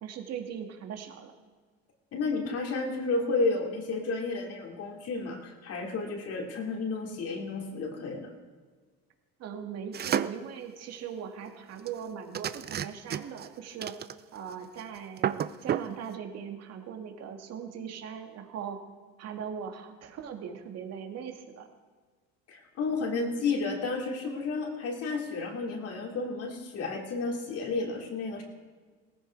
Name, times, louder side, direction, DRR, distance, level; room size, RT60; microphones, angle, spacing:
voice 1, 0.0-1.3 9.4-13.9 14.3-18.8 19.2-21.7, right 7 dB, 55° right, 4 dB, 2.4 m, -40 dB
voice 2, 2.1-8.3 22.5-28.4, left 3 dB, 55° left, 1 dB, 3.2 m, -32 dB
sound 1, 9.9-10.5 11.9-12.0 12.3-13.5 13.8-14.5 14.8-14.9 15.2-15.9, right 9 dB, 35° right, 0.6 m, -31 dB
18.0 x 15.0 x 4.7 m, 1.5 s
cardioid pair, 110°, 30 cm